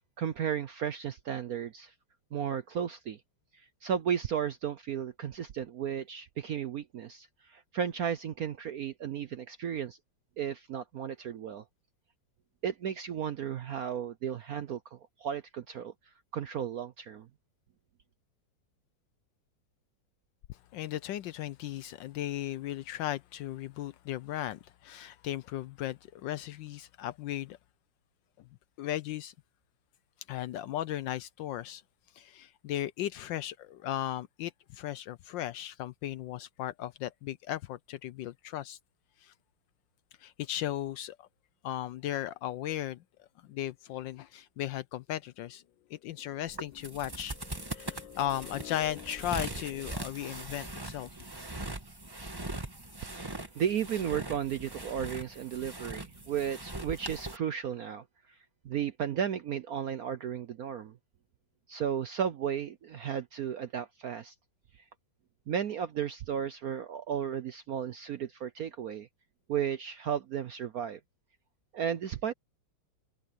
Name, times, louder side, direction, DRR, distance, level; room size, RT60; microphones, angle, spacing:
voice 1, 0.2-1.9 2.3-3.2 3.5-10.0 10.4-11.6 12.6-15.9 16.3-17.3 53.0-58.0 58.6-60.9 61.7-64.3 65.5-69.1 69.5-71.0 71.7-72.3, right 8 dB, 65° right, 0.9 m, -34 dB
voice 2, 20.5-27.6 28.8-29.3 30.3-31.8 32.1-38.8 39.2-39.3 40.2-41.3 41.6-45.6 45.9-51.1, left 12 dB, 75° left, 1.1 m, -36 dB
sound 1, 46.5-57.4, right 2 dB, 10° right, 1.3 m, -41 dB
omnidirectional pair, 2.3 m